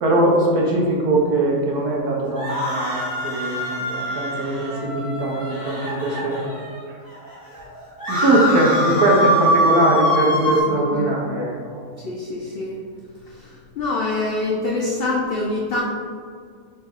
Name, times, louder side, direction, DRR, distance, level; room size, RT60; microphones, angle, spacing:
voice 1, 0.0-6.4 8.1-11.8, right 2 dB, 85° right, -2 dB, 1.4 m, -21 dB
sound 1, 2.3-6.8 7.3-7.4 7.5-10.6, equal, 15° left, 0.9 m, -23 dB
voice 2, 10.7-11.1 12.0-12.8 13.3-15.8, left 2 dB, 85° left, -2 dB, 0.5 m, -25 dB
4.2 x 3.4 x 3.5 m, 2.1 s
omnidirectional pair, 1.6 m